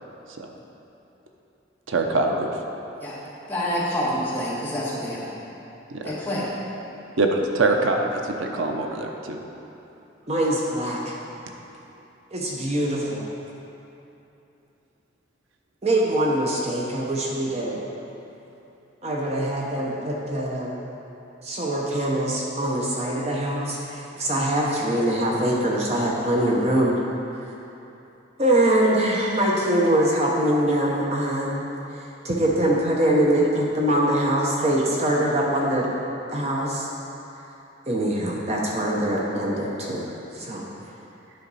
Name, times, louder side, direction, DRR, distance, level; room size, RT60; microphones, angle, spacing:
voice 1, 1.9-2.5 5.9-6.2 7.2-9.4, right 2 dB, 90° right, 3 dB, 0.7 m, -24 dB
voice 2, 3.5-5.3 6.0-6.5 25.1-25.3, equal, 10° left, -8 dB, 1.5 m, -27 dB
voice 3, 10.3-11.2 12.3-13.3 15.8-17.8 19.0-20.8 21.4-26.9 28.4-31.6 31.9-35.9 36.3-36.9 37.9-40.7, right 1 dB, 35° right, -3 dB, 0.7 m, -23 dB
9.9 x 5.8 x 4.0 m, 2.9 s
head